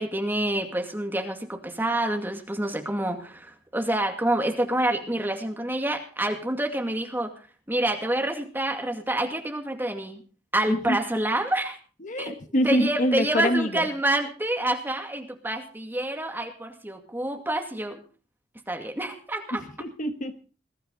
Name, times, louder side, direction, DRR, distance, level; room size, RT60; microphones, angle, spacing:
voice 1, 0.0-7.3 7.7-10.2 10.5-11.8 12.2-12.3 12.6-18.0 18.7-19.6, right 1 dB, 10° right, 3 dB, 2.3 m, -27 dB
voice 2, 12.0-13.9 19.8-20.3, equal, 45° left, 8 dB, 1.3 m, -25 dB
21.0 x 12.5 x 4.0 m, 0.37 s
head